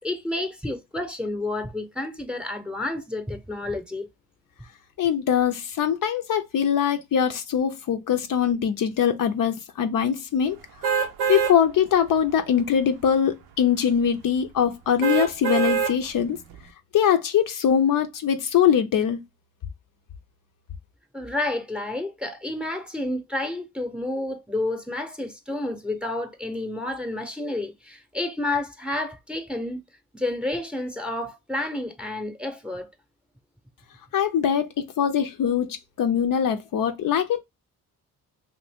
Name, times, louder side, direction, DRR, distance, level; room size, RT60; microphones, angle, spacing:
voice 1, 0.0-4.1 21.1-29.8 30.1-32.9, left 2 dB, 5° right, 0.7 m, -30 dB
voice 2, 5.0-10.6 11.3-16.4 16.9-19.2 34.1-37.4, left 8 dB, 60° left, 0.6 m, -22 dB
sound 1, 10.8-11.5 12.1-12.2 15.0-15.9 16.5-16.6, right 6 dB, 85° right, 0.6 m, -23 dB
2.6 x 2.6 x 3.5 m
supercardioid pair, 60°, 37 cm